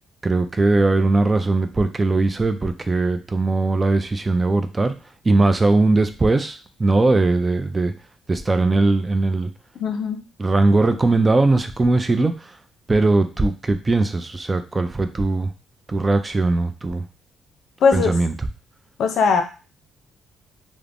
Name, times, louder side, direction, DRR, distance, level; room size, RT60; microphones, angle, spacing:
voice 1, 0.2-4.9 5.2-7.9 8.3-9.5 10.4-12.3 12.9-15.5 15.9-17.0 17.9-18.3, right 3 dB, 25° right, 9 dB, 0.4 m, -19 dB
voice 2, 9.8-10.2 17.8-18.2 19.0-19.4, left 5 dB, 75° left, 5 dB, 0.5 m, -19 dB
3.3 x 2.0 x 2.5 m, 0.33 s
cardioid pair, 90°, 0 cm